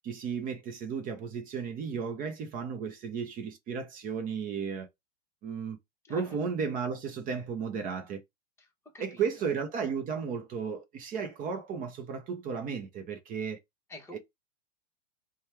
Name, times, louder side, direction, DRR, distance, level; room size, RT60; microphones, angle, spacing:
voice 1, 0.0-4.9 5.4-5.8 6.1-8.2 9.0-13.6 14.1-14.2, right 6 dB, 25° right, 0.6 m, -34 dB
voice 2, 6.0-6.4 8.6-9.3 13.9-14.2, left 1 dB, 10° left, 1.1 m, -48 dB
3.1 x 2.3 x 4.3 m
hypercardioid pair, 125°, 35 cm